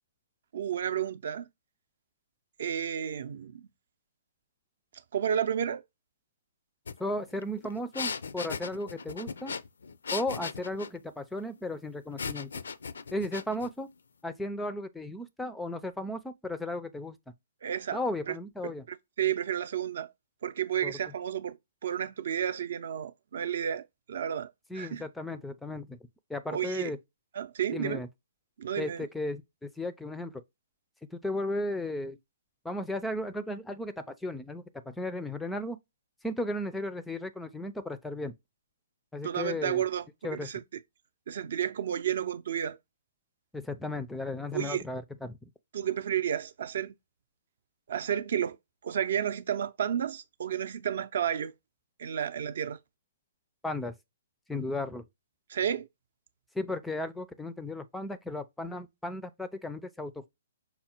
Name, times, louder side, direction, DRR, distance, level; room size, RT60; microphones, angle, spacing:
voice 1, 0.5-1.5 2.6-3.7 5.1-5.8 17.6-18.0 18.3-18.4 18.6-20.1 20.4-21.6 21.8-25.0 26.5-26.9 27.3-28.0 28.6-29.1 39.2-40.0 40.3-40.6 41.3-42.8 44.5-44.8 45.7-46.9 47.9-48.6 48.8-51.5 52.0-52.8 55.5-55.9, right 9 dB, 60° right, 0.5 m, -31 dB
sound 1, 6.9-7.0 7.3-11.0 12.2-13.7, left 5 dB, 85° left, 0.5 m, -37 dB
voice 2, 7.0-9.5 10.1-12.5 13.1-13.9 14.2-17.2 17.9-18.8 20.8-20.9 24.7-26.0 26.3-27.0 27.7-28.1 28.8-30.3 31.1-32.2 32.6-35.8 36.2-38.3 39.1-39.8 40.2-40.5 43.5-45.4 53.6-53.9 54.5-55.0 56.5-60.3, left 1 dB, 5° left, 0.4 m, -35 dB
5.5 x 2.1 x 4.3 m
hypercardioid pair, 155°, 0 cm